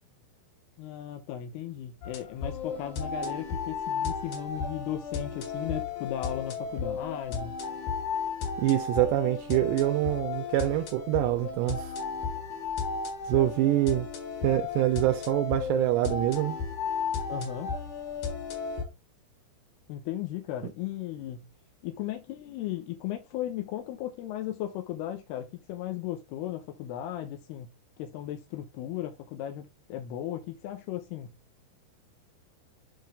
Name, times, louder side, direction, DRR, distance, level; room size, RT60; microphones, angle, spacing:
voice 1, 0.8-7.5 17.3-17.7 19.9-21.5 21.8-27.7 28.0-31.3, left 12 dB, 80° left, 2.5 m, -36 dB
sound 1, 2.0-18.8, left 5 dB, 65° left, 3.4 m, -34 dB
voice 2, 8.6-12.0 13.3-14.1 14.4-16.6, right 15 dB, 80° right, 2.6 m, -25 dB
7.7 x 5.5 x 3.4 m
omnidirectional pair, 5.3 m